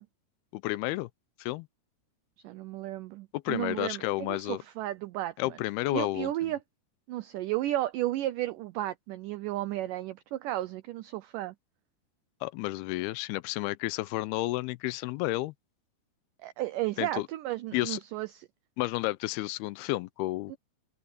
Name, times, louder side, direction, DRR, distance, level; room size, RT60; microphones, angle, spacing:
voice 1, 0.5-1.1 1.4-1.7 3.3-4.6 5.4-6.3 12.4-15.5 17.0-17.3 17.7-18.0 18.8-20.6, left 18 dB, 85° left, 2.5 m, -31 dB
voice 2, 2.4-5.6 5.9-6.6 7.1-11.5 16.4-18.5 20.5-20.6, right 15 dB, 85° right, 1.9 m, -33 dB
open air
omnidirectional pair, 4.5 m